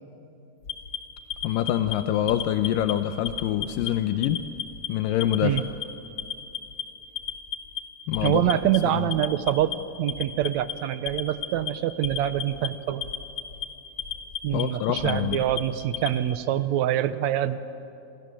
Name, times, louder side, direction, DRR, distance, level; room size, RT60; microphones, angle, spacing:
Alarm, 0.6-1.9 2.3-2.9 3.2-3.9 4.2-4.9 5.2-5.8 6.2-6.8 7.2-7.8 8.1-8.8 9.1-9.7 10.1-10.7 11.1-11.7 12.0-12.7 13.0-13.6 14.0-14.6 15.0-16.1, left 9 dB, 40° left, 2.3 m, -32 dB
voice 1, 1.4-4.5 4.9-5.6 8.1-8.6 8.9-9.1 14.5-15.4, left 11 dB, 85° left, 9 dB, 2.5 m, -25 dB
voice 2, 8.2-9.7 10.0-13.0 14.4-17.6, right 12 dB, 70° right, 13 dB, 1.9 m, -25 dB
28.5 x 27.5 x 7.7 m, 2.7 s
omnidirectional pair, 3.8 m